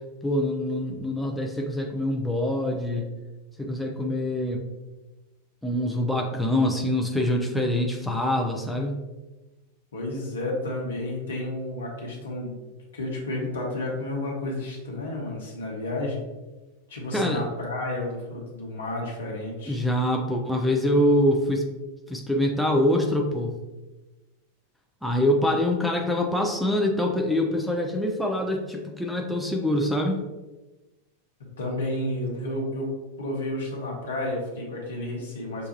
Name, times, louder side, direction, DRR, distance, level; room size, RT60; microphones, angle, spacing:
voice 1, 0.2-3.1 3.6-4.6 5.6-9.0 17.1-17.4 19.7-21.6 22.1-23.5 25.0-30.2, left 1 dB, ahead, 0 dB, 0.5 m, -25 dB
voice 2, 9.9-12.6 12.9-16.2 16.9-19.8 31.6-32.9 33.2-35.7, left 1 dB, 65° left, -1 dB, 1.0 m, -31 dB
6.1 x 2.3 x 2.9 m, 1.1 s
figure-of-eight pair, 90°, 0 cm